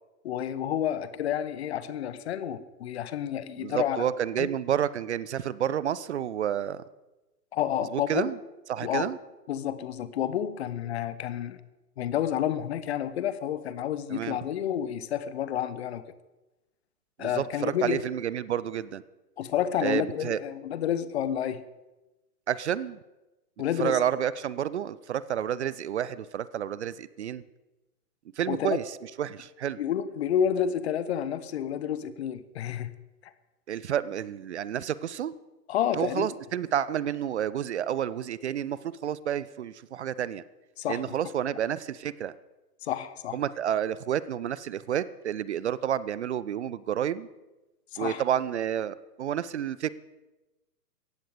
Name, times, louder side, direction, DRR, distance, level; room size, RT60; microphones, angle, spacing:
voice 1, 0.2-4.1 4.4-4.5 7.5-8.3 8.8-9.1 9.5-11.6 12.0-16.0 17.2-18.0 19.4-21.6 23.6-24.0 28.5-28.8 29.8-32.9 35.7-36.3 40.8-41.0 42.8-43.4 47.9-48.2, left 9 dB, 40° left, 15 dB, 1.0 m, -30 dB
voice 2, 3.6-6.8 7.8-8.4 8.7-9.2 14.1-14.4 17.2-19.0 19.8-20.4 22.5-23.0 23.8-27.4 28.4-29.8 33.7-35.3 35.9-40.4 40.9-42.3 43.3-47.3 48.0-49.9, right 10 dB, 45° right, 18 dB, 0.6 m, -30 dB
18.0 x 15.0 x 5.0 m, 1.1 s
figure-of-eight pair, 115°, 48 cm